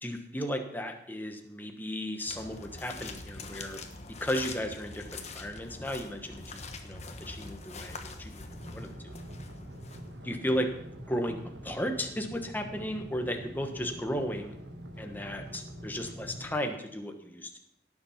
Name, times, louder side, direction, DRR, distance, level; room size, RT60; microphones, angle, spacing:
voice 1, 0.0-3.8 4.2-9.1 10.2-10.7 11.1-14.5 15.0-17.6, equal, 10° left, 5 dB, 1.1 m, -35 dB
sound 1, 2.3-10.4, left 3 dB, 35° left, 1.2 m, -44 dB
sound 2, 8.5-16.5, equal, 70° right, 1.6 m, -45 dB
17.5 x 7.3 x 5.7 m, 0.75 s
head